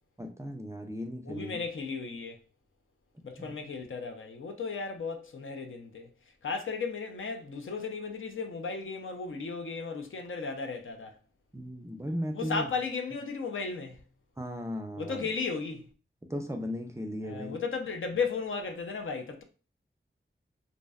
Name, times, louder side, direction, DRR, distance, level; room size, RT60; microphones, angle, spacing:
voice 1, 0.2-1.6 3.4-3.6 11.5-12.7 14.4-15.2 16.3-17.5, equal, 15° right, 0.3 m, -36 dB
voice 2, 1.2-2.4 3.2-6.1 6.4-11.2 12.3-14.0 15.0-15.9 17.2-19.4, left 4 dB, 70° left, 0.4 m, -35 dB
2.6 x 2.1 x 2.3 m
wide cardioid pair, 80°, 21 cm